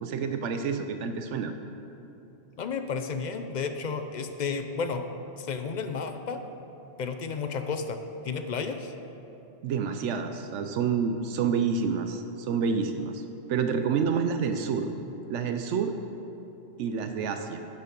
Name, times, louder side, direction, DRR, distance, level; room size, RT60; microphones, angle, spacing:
voice 1, 0.0-1.5 9.6-13.2 13.5-14.9 15.3-15.9 16.8-17.6, right 6 dB, 80° right, 7 dB, 0.9 m, -28 dB
voice 2, 2.6-5.0 5.4-6.4 7.0-8.0 8.2-8.9, left 5 dB, 55° left, 7 dB, 0.5 m, -32 dB
10.5 x 6.7 x 5.2 m, 3.0 s
omnidirectional pair, 1.2 m